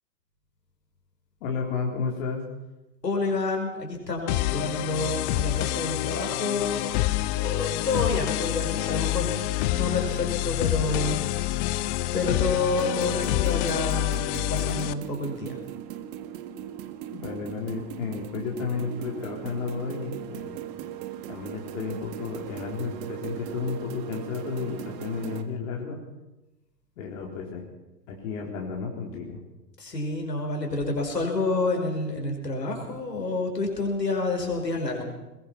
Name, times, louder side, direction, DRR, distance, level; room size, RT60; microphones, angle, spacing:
voice 1, 1.4-2.5 17.1-20.6 21.3-26.0 27.0-27.7 28.1-29.4, left 5 dB, 50° left, 0 dB, 4.0 m, -32 dB
voice 2, 3.0-7.0 7.4-11.2 12.1-14.2 14.5-15.6 29.8-35.0, left 3 dB, 80° left, 2 dB, 5.5 m, -29 dB
sound 1, 4.3-14.9, left 17 dB, 30° left, 0.8 m, -27 dB
sound 2, 12.7-25.4, right 11 dB, 35° right, 1.7 m, -38 dB
21.5 x 21.5 x 5.8 m, 1.0 s
figure-of-eight pair, 100°, 49 cm